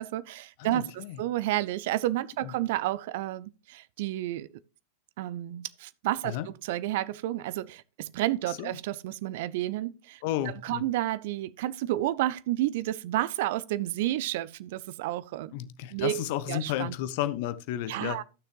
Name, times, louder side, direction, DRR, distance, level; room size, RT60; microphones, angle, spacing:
voice 1, 0.0-4.5 5.2-15.5 15.9-17.0 17.9-18.2, right 15 dB, 50° right, 0.4 m, -31 dB
voice 2, 0.7-1.2 2.4-2.5 6.2-6.5 8.6-8.7 10.2-10.8 15.5-18.2, left 12 dB, 50° left, 0.8 m, -32 dB
14.0 x 6.5 x 3.1 m
figure-of-eight pair, 90°, 0 cm